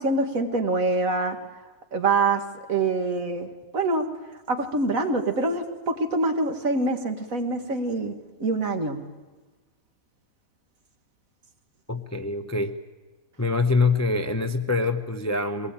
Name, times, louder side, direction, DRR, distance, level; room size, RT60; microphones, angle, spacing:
voice 1, 0.0-1.4 1.9-2.4 2.7-4.1 4.5-8.1 8.4-9.0, right 2 dB, 60° right, 6 dB, 2.1 m, -25 dB
voice 2, 11.9-12.8 13.4-15.7, left 3 dB, 15° left, 7 dB, 0.6 m, -24 dB
22.5 x 19.0 x 8.9 m, 1.3 s
omnidirectional pair, 1.7 m